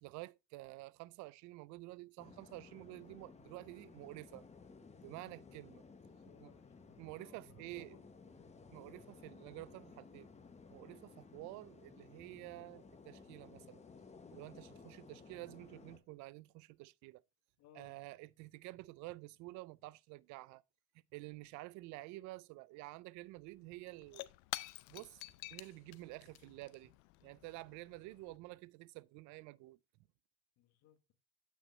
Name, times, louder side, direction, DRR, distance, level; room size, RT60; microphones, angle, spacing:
voice 1, 0.0-4.5 5.0-5.8 6.4-6.5 7.0-8.0 8.7-10.3 10.7-13.8 14.3-17.2 17.8-20.6 21.1-24.3 24.9-25.2 25.5-26.9 27.2-29.8, right 20 dB, 75° right, 0.4 m, -50 dB
sound 1, 2.2-16.0, left 4 dB, 20° left, 1.1 m, -57 dB
voice 2, 6.1-8.4 17.6-18.0 30.6-31.1, left 10 dB, 65° left, 1.2 m, -65 dB
Shatter / Crushing, 23.2-23.3 23.5-28.4, left 20 dB, 80° left, 0.5 m, -49 dB
7.9 x 6.2 x 3.1 m
cardioid pair, 105°, 30 cm